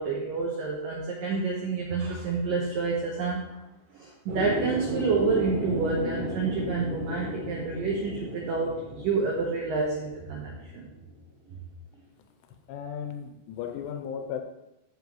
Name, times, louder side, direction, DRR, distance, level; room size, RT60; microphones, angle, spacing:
voice 1, 0.0-3.6 3.9-10.9 11.5-11.6, right 4 dB, 85° right, -2 dB, 1.9 m, -29 dB
sound 1, 4.3-11.1, left 1 dB, 60° right, 2.7 m, -35 dB
voice 2, 12.7-14.4, left 8 dB, 85° left, 5 dB, 3.2 m, -35 dB
14.5 x 5.6 x 3.1 m, 0.91 s
omnidirectional pair, 5.6 m